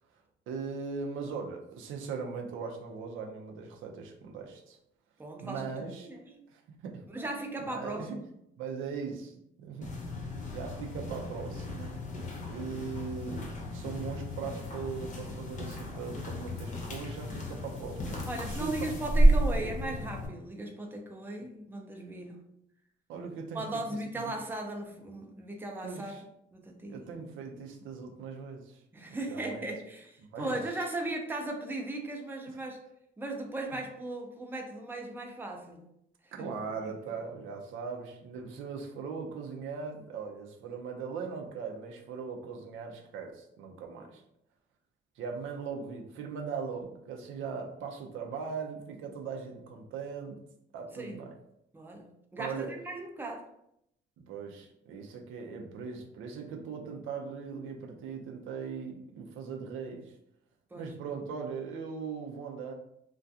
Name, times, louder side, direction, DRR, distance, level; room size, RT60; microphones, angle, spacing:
voice 1, 0.5-4.8 5.4-7.0 7.6-8.2 8.6-9.9 10.5-11.9 12.5-18.7 19.5-19.7 23.1-23.6 24.1-24.3 25.8-26.2 26.9-28.8 29.3-29.7 30.3-30.6 33.7-33.8 36.3-44.2 45.2-50.4 50.7-51.3 52.4-52.7 54.2-60.1 60.7-62.7, right 5 dB, 85° right, 2 dB, 0.5 m, -39 dB
voice 2, 5.2-5.7 6.0-6.2 7.1-8.2 16.5-16.6 18.3-22.4 23.5-26.1 26.5-27.0 28.9-32.8 33.2-35.8 36.2-36.5 36.8-36.9 44.0-44.1 50.9-51.2 51.7-53.5 60.7-60.9, right 2 dB, 10° right, 2 dB, 0.4 m, -37 dB
sound 1, 9.8-20.3, right 1 dB, 40° left, 0.7 m, -31 dB
2.4 x 2.2 x 2.6 m, 0.77 s
cardioid pair, 90°, 20 cm